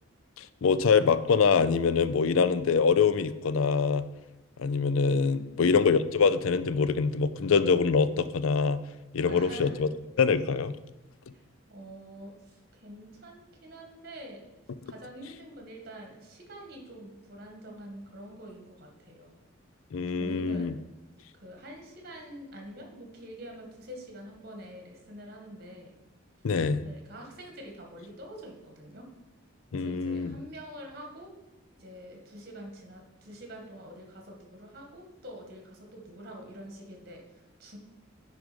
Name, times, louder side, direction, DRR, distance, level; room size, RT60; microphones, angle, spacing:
voice 1, 0.4-4.1 4.6-8.8 9.1-9.9 10.2-10.7 19.9-20.7 26.4-26.8 29.7-30.4, left 5 dB, 80° left, 14 dB, 0.4 m, -24 dB
voice 2, 5.1-5.9 9.3-9.8 11.3-11.4 11.7-14.4 14.9-19.3 20.1-20.9 21.3-25.9 26.7-29.1 29.7-31.3 31.8-37.8, right 1 dB, 50° right, 2 dB, 1.8 m, -46 dB
9.5 x 5.1 x 5.2 m, 1.0 s
head